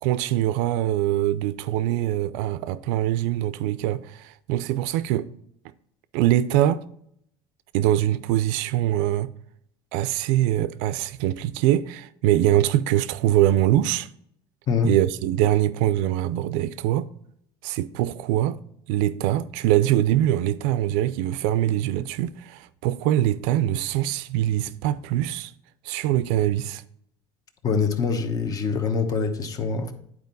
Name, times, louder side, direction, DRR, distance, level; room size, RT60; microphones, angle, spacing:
voice 1, 0.0-5.3 6.1-6.8 7.7-9.3 9.9-14.1 14.8-17.1 17.6-18.6 18.9-25.5 25.8-26.8, right 13 dB, 80° right, 0.4 m, -23 dB
voice 2, 27.6-29.9, left 5 dB, 35° left, 1.0 m, -24 dB
9.6 x 4.5 x 4.0 m
cardioid pair, 120°, 10 cm